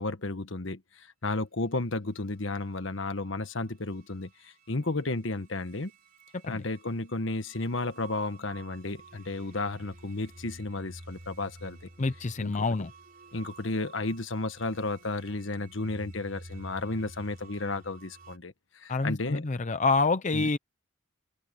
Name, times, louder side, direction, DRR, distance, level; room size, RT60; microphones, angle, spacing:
voice 1, 0.0-5.9 6.4-11.8 12.4-12.5 13.3-19.4 20.3-20.5, left 2 dB, 65° left, 1.4 m, -33 dB
sound 1, 2.2-18.4, right 2 dB, 45° right, 3.9 m, -52 dB
voice 2, 12.0-12.9 18.9-20.6, left 3 dB, 35° left, 0.6 m, -27 dB
head